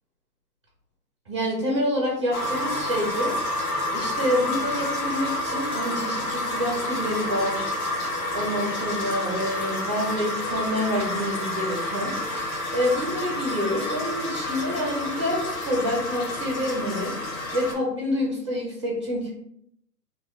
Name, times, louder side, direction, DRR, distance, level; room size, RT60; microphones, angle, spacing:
voice 1, 1.3-3.3 3.9-7.7 8.3-12.1 12.7-19.3, equal, 20° right, -3 dB, 0.5 m, -27 dB
sound 1, 2.3-17.7, left 1 dB, 60° left, 1.0 m, -29 dB
3.0 x 2.7 x 3.5 m, 0.73 s
hypercardioid pair, 145°, 49 cm